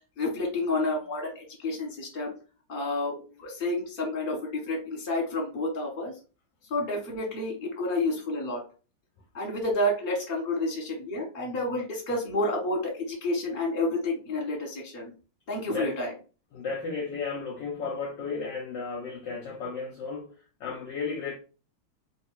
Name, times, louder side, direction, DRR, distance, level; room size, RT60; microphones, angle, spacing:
voice 1, 0.2-2.3 2.7-6.1 6.7-8.6 9.3-15.1 15.5-16.1, left 2 dB, 35° left, 1.1 m, -30 dB
voice 2, 16.5-21.3, left 4 dB, 70° left, 1.1 m, -34 dB
3.3 x 2.7 x 3.1 m
omnidirectional pair, 2.3 m